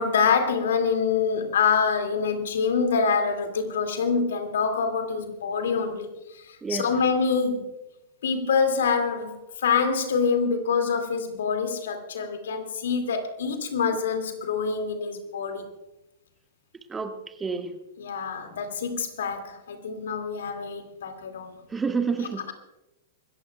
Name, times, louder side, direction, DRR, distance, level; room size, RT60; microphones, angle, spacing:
voice 1, 0.0-7.7 8.2-15.7 18.0-21.6 22.2-22.5, left 5 dB, 70° left, 6 dB, 2.3 m, -26 dB
voice 2, 17.4-17.7 21.7-22.4, right 5 dB, 15° right, 5 dB, 1.6 m, -28 dB
26.0 x 14.5 x 2.3 m, 0.95 s
hypercardioid pair, 105°, 0 cm